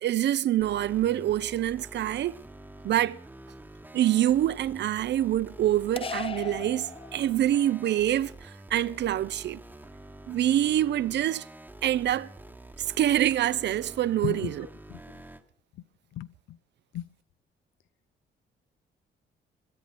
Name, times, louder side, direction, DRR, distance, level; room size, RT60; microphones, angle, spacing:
voice 1, 0.0-2.4 2.8-3.2 3.9-9.6 10.3-11.4 11.8-12.3 12.8-14.7, right 12 dB, 60° right, 0.5 m, -26 dB
sound 1, 0.6-15.4, right 1 dB, 10° right, 1.1 m, -47 dB
sound 2, 6.0-7.6, left 5 dB, 30° left, 0.6 m, -37 dB
voice 2, 14.2-15.0 16.1-16.6 16.9-17.1, left 12 dB, 80° left, 0.6 m, -36 dB
21.5 x 14.0 x 4.2 m
cardioid pair, 90°, 20 cm